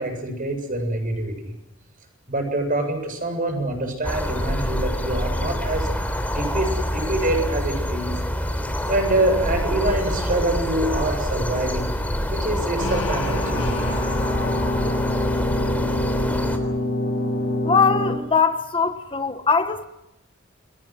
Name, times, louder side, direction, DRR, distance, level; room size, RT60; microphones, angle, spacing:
voice 1, 0.0-1.5 2.3-5.9 6.3-8.1 8.9-11.9 12.3-13.9, right 1 dB, 45° right, 7.7 m, -25 dB
sound 1, 4.0-16.6, equal, 10° left, 3.7 m, -26 dB
sound 2, 12.8-18.2, left 1 dB, 60° left, 7.3 m, -26 dB
voice 2, 17.6-19.8, left 5 dB, 25° left, 1.2 m, -21 dB
30.0 x 24.0 x 6.3 m
head